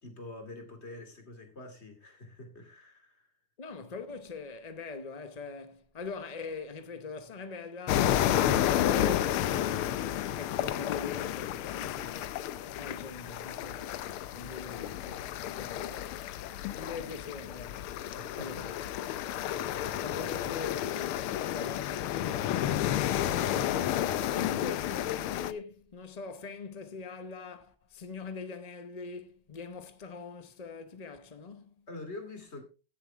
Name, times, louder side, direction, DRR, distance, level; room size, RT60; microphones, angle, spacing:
voice 1, 0.0-3.3 18.1-18.6 20.1-20.3 31.9-32.6, left 2 dB, 30° left, 2.8 m, -46 dB
voice 2, 3.6-12.5 12.8-14.0 14.3-16.2 16.7-18.0 18.4-18.8 19.4-31.7, left 4 dB, 60° left, 0.4 m, -43 dB
sound 1, 7.9-25.5, left 11 dB, 85° left, 1.6 m, -31 dB
16.5 x 7.1 x 3.5 m
omnidirectional pair, 2.4 m